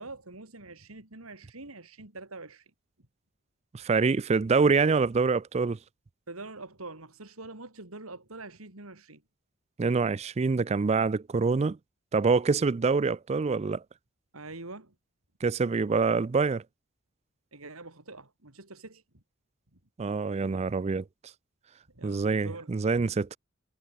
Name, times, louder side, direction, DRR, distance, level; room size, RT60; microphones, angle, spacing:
voice 1, 0.0-2.6 6.3-9.2 14.3-14.9 17.5-19.2 19.7-19.8 21.9-22.7, right 2 dB, 85° right, 3.7 m, -44 dB
voice 2, 3.7-5.8 9.8-11.8 12.1-13.8 15.4-16.6 20.0-21.0 22.0-23.4, right 4 dB, 30° right, 0.4 m, -25 dB
head